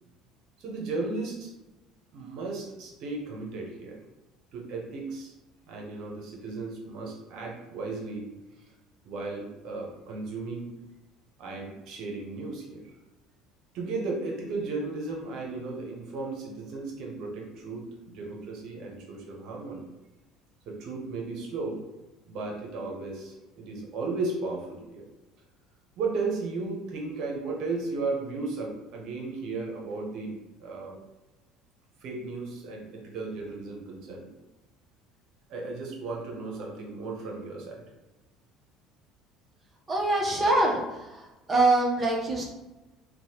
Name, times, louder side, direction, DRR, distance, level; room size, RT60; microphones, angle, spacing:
voice 1, 0.6-1.5 2.1-4.0 4.5-5.3 5.7-8.3 9.0-10.7 11.4-12.8 13.7-19.9 20.7-21.8 22.3-25.0 26.0-30.3 30.6-31.0 32.0-34.3 35.5-37.8, right 3 dB, 60° right, -1 dB, 0.9 m, -35 dB
voice 2, 39.9-42.4, right 2 dB, 25° right, -1 dB, 0.8 m, -24 dB
3.0 x 2.3 x 2.8 m, 1.1 s
supercardioid pair, 95°, 0 cm